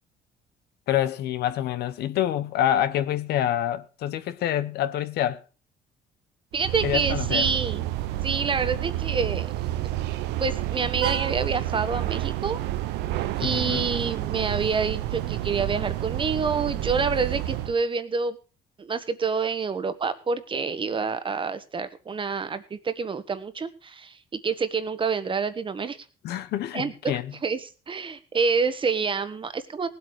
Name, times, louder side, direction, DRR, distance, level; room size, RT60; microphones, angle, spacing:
voice 1, 0.9-5.4 6.8-7.5 13.4-13.9 26.2-27.3, left 11 dB, 75° left, 1.1 m, -27 dB
voice 2, 6.5-7.9 8.2-9.5 9.8-9.9 10.4-12.6 13.4-18.4 18.8-24.2 24.4-26.0 26.7-29.9, right 5 dB, 30° right, 1.4 m, -27 dB
sound 1, 6.5-17.7, right 14 dB, 90° right, 1.0 m, -29 dB
18.0 x 8.1 x 4.8 m
cardioid pair, 110°, 17 cm